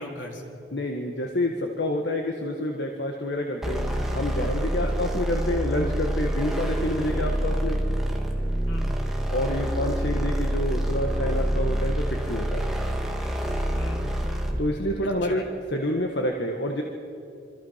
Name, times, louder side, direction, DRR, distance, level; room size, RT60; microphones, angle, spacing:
voice 1, 0.0-0.5 4.8-4.9 8.7-9.1 13.7-14.3 15.0-15.4, left 1 dB, 85° left, 1 dB, 3.9 m, -38 dB
voice 2, 0.7-7.8 9.3-12.6 14.6-16.8, left 1 dB, 70° left, 2 dB, 1.6 m, -28 dB
sound 1, 3.6-14.7, equal, ahead, 2.3 m, -27 dB
26.5 x 25.5 x 5.8 m, 2.7 s
head